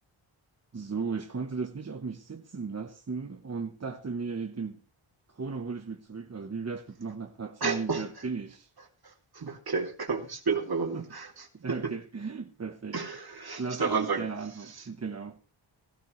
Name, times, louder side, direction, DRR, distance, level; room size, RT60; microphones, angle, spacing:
voice 1, 0.7-4.8 5.3-8.7 10.9-11.1 11.5-13.0 13.5-15.4, right 5 dB, 30° right, 1.0 m, -36 dB
voice 2, 7.6-8.0 9.0-11.9 12.9-14.3 14.8-14.9, right 4 dB, 50° right, 2.6 m, -31 dB
16.5 x 16.5 x 3.1 m
wide cardioid pair, 145°, 48 cm